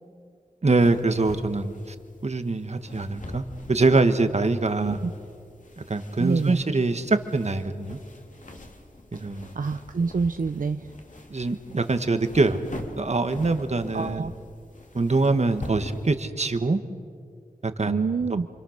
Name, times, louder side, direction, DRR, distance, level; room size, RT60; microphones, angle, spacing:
voice 1, 0.6-1.9 2.2-3.4 3.7-5.0 5.9-8.0 9.1-9.5 11.3-12.6 13.0-14.3 14.9-16.8 17.8-18.1, right 3 dB, 50° right, 8 dB, 1.5 m, -24 dB
sound 1, 0.8-16.2, left 2 dB, 60° left, 2.9 m, -43 dB
voice 2, 4.8-5.1 6.2-6.6 9.5-10.9 13.9-14.3 17.9-18.5, right 4 dB, 65° right, 8 dB, 0.8 m, -26 dB
29.0 x 25.0 x 6.6 m, 2.2 s
wide cardioid pair, 70°, 15 cm